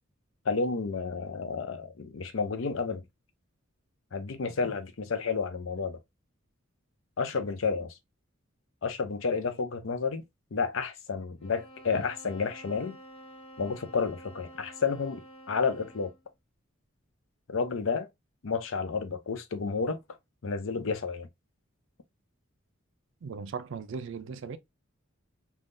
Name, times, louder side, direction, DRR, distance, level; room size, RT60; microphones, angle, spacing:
voice 1, 0.4-3.0 4.1-6.0 7.2-8.0 8.8-10.2 10.5-13.0 13.6-16.1 17.5-18.1 18.4-20.0 20.4-21.3, left 5 dB, 70° left, 0.6 m, -31 dB
sound 1, 11.4-16.3, equal, 25° left, 1.2 m, -50 dB
voice 2, 23.2-24.6, right 5 dB, 65° right, 0.4 m, -38 dB
3.5 x 2.3 x 2.5 m
head